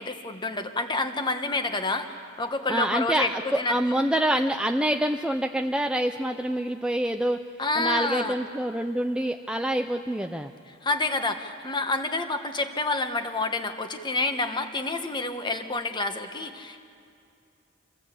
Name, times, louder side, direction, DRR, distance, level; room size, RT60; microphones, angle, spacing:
voice 1, 0.0-3.7 7.6-8.4 10.8-16.8, left 2 dB, 25° left, 7 dB, 1.2 m, -28 dB
voice 2, 2.7-7.4 7.8-10.5, right 1 dB, 5° right, 5 dB, 0.5 m, -26 dB
27.0 x 15.5 x 8.4 m, 2.4 s
head